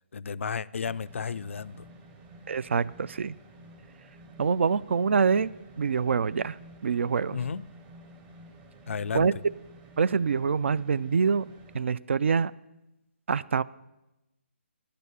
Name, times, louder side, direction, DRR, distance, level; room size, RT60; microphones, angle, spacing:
voice 1, 0.1-1.9 7.3-7.7 8.9-9.4, left 6 dB, 75° left, 0.3 m, -33 dB
sound 1, 0.8-11.8, right 1 dB, 15° right, 0.7 m, -51 dB
voice 2, 2.5-3.3 4.4-5.5 5.8-6.6 6.8-7.4 9.1-9.3 10.0-11.5 11.7-12.5 13.3-13.6, right 5 dB, 65° right, 0.4 m, -25 dB
10.0 x 6.8 x 8.3 m
hypercardioid pair, 155°, 7 cm